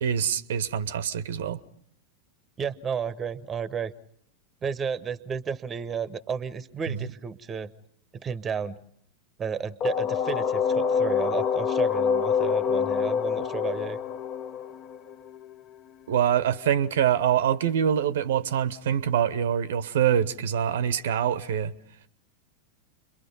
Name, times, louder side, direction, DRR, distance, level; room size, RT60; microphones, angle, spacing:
voice 1, 0.0-1.6 6.9-7.1 16.1-21.7, right 9 dB, 60° right, 0.9 m, -25 dB
voice 2, 2.6-3.9 4.6-7.7 8.1-8.8 9.4-14.0, right 6 dB, 20° right, 1.0 m, -32 dB
sound 1, 9.8-15.5, left 7 dB, 30° left, 1.0 m, -26 dB
30.0 x 23.0 x 5.4 m
figure-of-eight pair, 90°, 0 cm